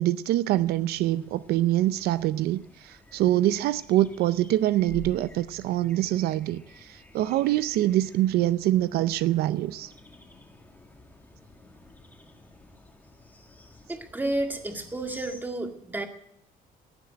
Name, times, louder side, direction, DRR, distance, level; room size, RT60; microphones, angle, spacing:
voice 1, 0.0-9.9, right 14 dB, 80° right, 0.5 m, -25 dB
sound 1, 0.5-15.4, left 2 dB, 10° left, 1.8 m, -51 dB
voice 2, 13.9-16.1, right 2 dB, 10° right, 1.9 m, -31 dB
16.0 x 7.4 x 9.9 m
cardioid pair, 145°, 16 cm